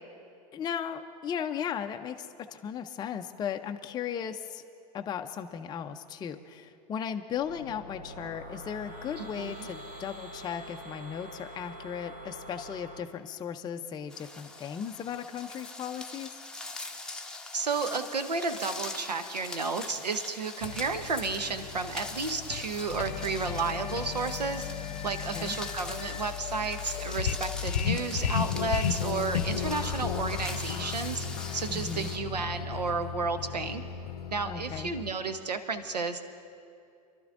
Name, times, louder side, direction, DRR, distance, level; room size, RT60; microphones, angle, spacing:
voice 1, 0.5-4.7 4.9-16.3 25.3-25.5 31.7-32.1 34.4-34.9, left 8 dB, 20° left, 6 dB, 0.5 m, -36 dB
sound 1, 7.3-13.0, right 1 dB, 45° right, 3.8 m, -45 dB
voice 2, 9.2-9.7 17.5-24.7 25.0-31.2 31.5-33.8 34.3-36.3, right 4 dB, 85° right, 9 dB, 0.9 m, -32 dB
sound 2, 14.1-32.2, left 3 dB, 5° left, 0.9 m, -42 dB
sound 3, 20.6-35.1, left 8 dB, 75° left, 0.6 m, -34 dB
28.5 x 12.0 x 2.5 m, 2.4 s
figure-of-eight pair, 90°, 20 cm